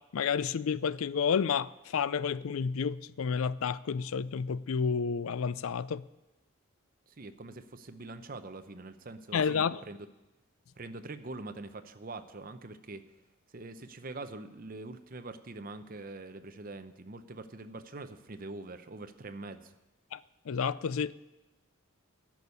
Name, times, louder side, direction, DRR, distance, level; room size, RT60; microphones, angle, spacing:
voice 1, 0.1-6.0 9.3-9.8 20.1-20.2 20.5-21.2, left 6 dB, 80° left, 0.4 m, -30 dB
voice 2, 7.2-10.1 10.8-13.1 13.5-19.7, right 2 dB, 40° right, 0.7 m, -44 dB
10.5 x 7.1 x 9.5 m
head